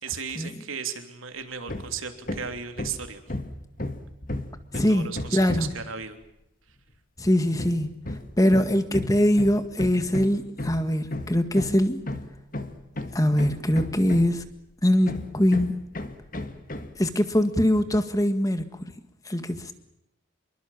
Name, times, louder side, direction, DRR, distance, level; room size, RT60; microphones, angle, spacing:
voice 1, 0.0-3.2 4.7-6.1, right 6 dB, 85° right, 6 dB, 3.2 m, -35 dB
Hammer, 1.7-2.0 2.3-5.8 7.6-14.5 15.1-17.0, left 1 dB, 40° left, 1.9 m, -34 dB
voice 2, 4.7-5.7 7.2-7.9 8.4-12.0 13.1-14.4 14.8-15.8 17.0-18.9 19.3-19.7, equal, 15° left, 9 dB, 1.8 m, -22 dB
27.0 x 23.0 x 7.4 m, 0.84 s
head